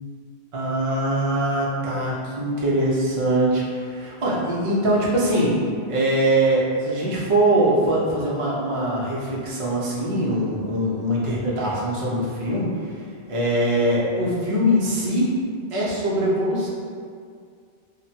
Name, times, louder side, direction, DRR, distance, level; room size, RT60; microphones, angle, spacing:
voice 1, 0.5-5.6 5.9-12.9 13.3-15.3 15.7-16.7, right 1 dB, 40° right, -6 dB, 0.5 m, -22 dB
2.8 x 2.1 x 2.7 m, 2.2 s
omnidirectional pair, 1.1 m